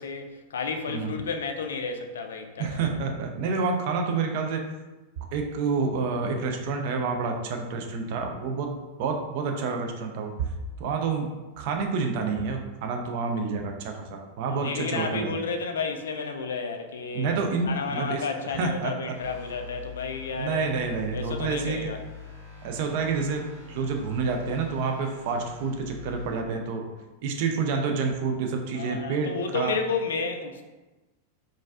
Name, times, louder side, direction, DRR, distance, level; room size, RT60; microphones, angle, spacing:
voice 1, 0.0-2.9 14.4-17.4 17.6-20.7 21.1-22.0 28.7-30.6, left 4 dB, 65° left, 5 dB, 0.3 m, -32 dB
voice 2, 0.9-1.2 2.6-4.7 5.3-10.3 10.8-11.3 11.6-15.3 17.1-19.2 20.4-21.9 22.6-26.8 27.2-29.7, right 4 dB, 50° right, 3 dB, 0.4 m, -28 dB
sound 1, 19.1-26.3, left 7 dB, 80° right, 1.0 m, -44 dB
3.9 x 2.4 x 2.3 m, 1.1 s
figure-of-eight pair, 90°, 0 cm